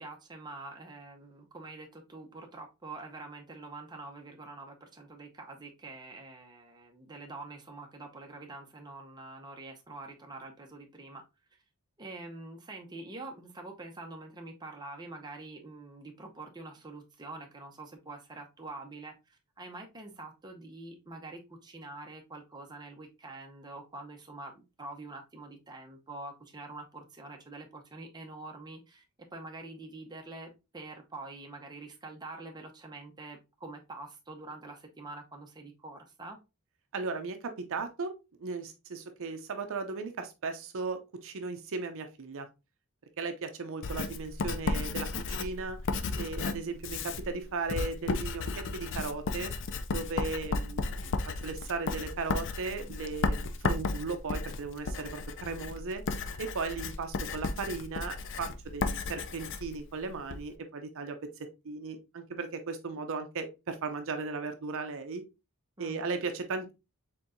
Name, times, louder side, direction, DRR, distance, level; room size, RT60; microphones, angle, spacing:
voice 1, 0.0-11.2 12.0-29.0 29.3-36.4 65.8-66.1, right 2 dB, 20° right, 0.7 m, -45 dB
voice 2, 36.9-42.5 43.2-45.8 46.2-49.5 49.9-56.0 56.4-61.3 61.6-65.2 65.8-66.7, right 4 dB, 60° right, 0.6 m, -37 dB
Writing, 43.8-60.5, left 3 dB, 55° left, 0.4 m, -34 dB
4.4 x 3.7 x 2.6 m
head